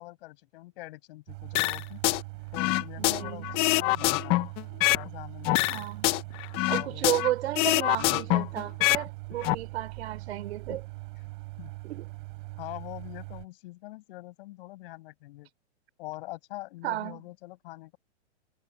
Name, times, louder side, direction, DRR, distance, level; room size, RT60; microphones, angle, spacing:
voice 1, 0.0-2.0 2.5-4.4 4.9-5.9 6.6-7.1 10.7-10.8 11.6-11.7 12.6-15.5 16.0-18.0, left 19 dB, 50° left, 6.7 m, -44 dB
sound 1, 1.3-13.5, right 25 dB, 45° right, 5.7 m, -42 dB
sound 2, 1.6-2.2 2.5-5.1 5.4-7.3 7.6-9.0 9.3-9.5, left 20 dB, 15° left, 0.3 m, -25 dB
voice 2, 3.0-3.5 5.7-6.2 6.7-10.8 11.8-12.1 16.8-17.2, right 14 dB, 65° right, 4.0 m, -33 dB
hypercardioid pair, 140°, 35 cm